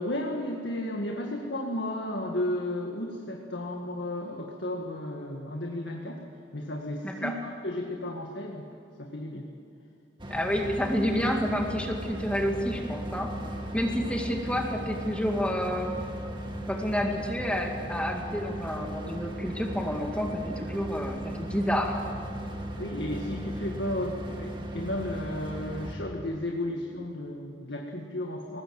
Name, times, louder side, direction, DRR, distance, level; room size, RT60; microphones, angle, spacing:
voice 1, 0.0-6.2 6.5-8.7 9.0-9.5 14.1-14.2 22.8-28.6, left 1 dB, 65° left, 1 dB, 1.9 m, -33 dB
voice 2, 7.0-7.3 10.3-13.3 13.7-16.0 16.7-22.0, equal, 5° left, 2 dB, 2.0 m, -29 dB
sound 1, 10.2-25.9, right 1 dB, 25° right, 2.1 m, -37 dB
22.5 x 19.5 x 7.7 m, 2.9 s
head